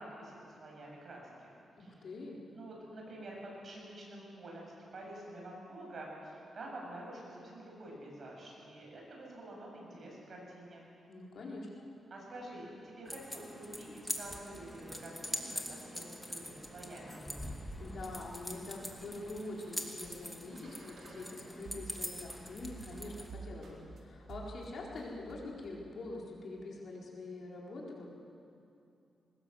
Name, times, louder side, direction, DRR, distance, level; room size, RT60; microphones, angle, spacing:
voice 1, 0.0-1.5 1.8-2.1 2.5-10.9 12.1-17.2, right 1 dB, 50° right, -2 dB, 7.8 m, -48 dB
voice 2, 1.8-2.4 11.1-11.8 17.8-28.1, left 2 dB, 60° left, -3 dB, 4.5 m, -45 dB
sound 1, 12.3-22.0 22.3-24.0 24.3-24.7 25.0-25.7, right 4 dB, 65° right, 4.3 m, -54 dB
sound 2, 13.1-23.3, left 1 dB, 5° left, 2.4 m, -44 dB
23.0 x 20.0 x 8.0 m, 2.6 s
wide cardioid pair, 125°, 0 cm